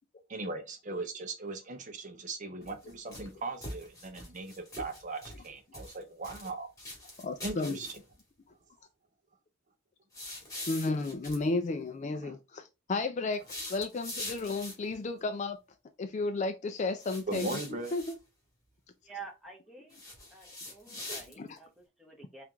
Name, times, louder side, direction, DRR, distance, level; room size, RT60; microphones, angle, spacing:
voice 1, 0.3-6.7 7.4-8.0 12.2-12.4 17.3-17.9, right 2 dB, 35° right, 0.6 m, -39 dB
sound 1, 2.6-3.3 3.6-5.5 5.7-6.5 6.8-8.2 10.1-11.4 13.3-14.9 17.0-18.1 19.9-21.6, left 1 dB, 15° left, 1.8 m, -43 dB
voice 2, 7.2-7.8 10.7-15.6 16.0-17.6 17.9-18.0 20.9-21.0 21.4-21.6, left 3 dB, 35° left, 0.3 m, -33 dB
voice 3, 19.0-20.0 20.3-22.4, right 5 dB, ahead, 0.9 m, -49 dB
4.4 x 2.5 x 3.4 m
head